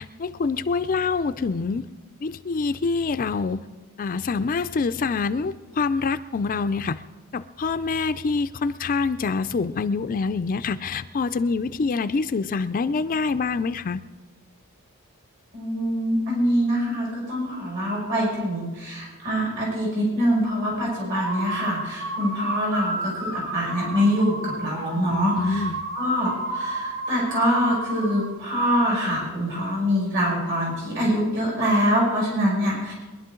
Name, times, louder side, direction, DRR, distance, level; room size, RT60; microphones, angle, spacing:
voice 1, 0.0-1.9 2.2-3.6 4.0-7.0 7.3-14.0 24.9-25.8, left 4 dB, 40° left, 11 dB, 0.4 m, -26 dB
voice 2, 15.5-25.7 25.9-32.9, equal, 55° right, -3 dB, 6.0 m, -24 dB
Fumfumfum whistled, 21.1-28.3, right 1 dB, 85° right, 2.9 m, -32 dB
22.5 x 11.0 x 3.8 m, 1.2 s
head